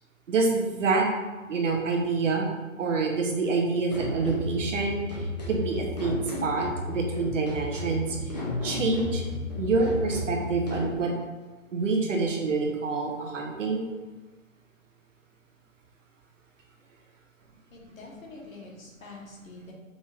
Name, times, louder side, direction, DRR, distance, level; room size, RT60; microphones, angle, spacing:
voice 1, 0.3-1.1 1.5-2.5 2.8-8.3 8.6-9.2 9.6-11.1 11.7-13.8, right 3 dB, 60° right, 1 dB, 0.9 m, -27 dB
sound 1, 3.9-11.0, left 2 dB, 30° left, 0.6 m, -33 dB
voice 2, 17.7-19.7, left 3 dB, 70° left, -2 dB, 1.4 m, -45 dB
5.2 x 2.5 x 3.3 m, 1.3 s
hypercardioid pair, 165°, 42 cm